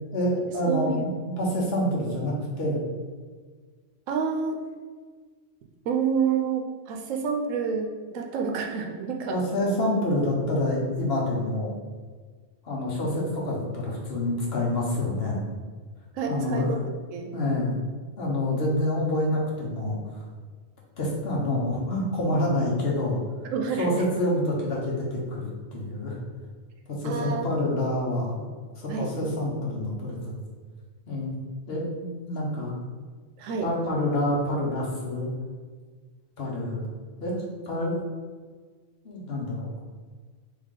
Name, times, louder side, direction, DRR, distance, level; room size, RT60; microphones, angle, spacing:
voice 1, 0.1-0.9 1.4-2.8 9.3-11.7 12.6-15.4 16.3-16.8 17.3-17.8 18.2-20.2 21.0-23.2 23.7-26.2 27.0-28.5 28.7-30.3 31.1-31.3 31.7-32.8 33.6-35.3 36.4-36.9 37.2-38.0 39.0-39.7, left 1 dB, 55° left, -3 dB, 1.2 m, -27 dB
voice 2, 0.7-1.1 4.1-4.6 5.9-9.4 16.1-16.8 17.1-17.3 23.5-24.0 27.0-27.5 28.9-29.1 33.4-33.7, right 6 dB, 90° right, 3 dB, 1.0 m, -28 dB
3.7 x 3.4 x 3.6 m, 1.5 s
omnidirectional pair, 1.3 m